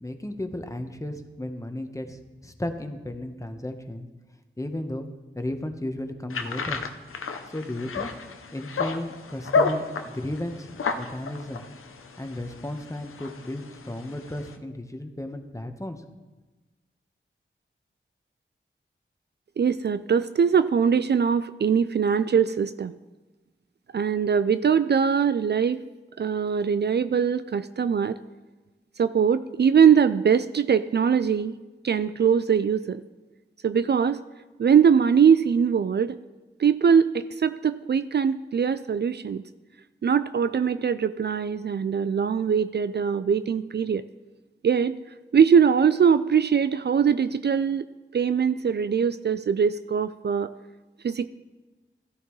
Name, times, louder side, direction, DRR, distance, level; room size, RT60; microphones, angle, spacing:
voice 1, 0.0-4.1 4.6-5.1 5.3-6.8 7.5-8.1 8.5-11.6 12.2-16.0, left 1 dB, 15° left, 6 dB, 1.1 m, -34 dB
sound 1, 6.3-14.6, left 4 dB, 90° left, 0.7 m, -31 dB
voice 2, 19.6-22.9 23.9-25.8 26.2-28.2 29.0-31.6 31.8-33.0 33.6-34.2 34.6-36.2 36.6-39.4 40.0-44.0 44.6-45.0 45.3-47.9 48.1-50.5 51.0-51.3, right 7 dB, 55° right, 13 dB, 0.4 m, -22 dB
14.5 x 10.5 x 3.2 m, 1.2 s
cardioid pair, 40°, 21 cm